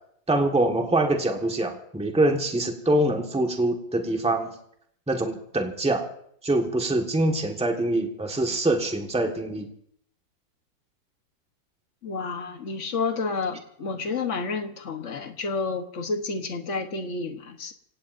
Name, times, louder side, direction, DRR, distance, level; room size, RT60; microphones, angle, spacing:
voice 1, 0.3-4.5 5.1-6.1 6.4-9.7, right 1 dB, 5° right, 2 dB, 1.4 m, -24 dB
voice 2, 12.0-17.7, left 4 dB, 45° left, 6 dB, 1.3 m, -30 dB
26.5 x 17.5 x 2.7 m, 0.69 s
omnidirectional pair, 2.1 m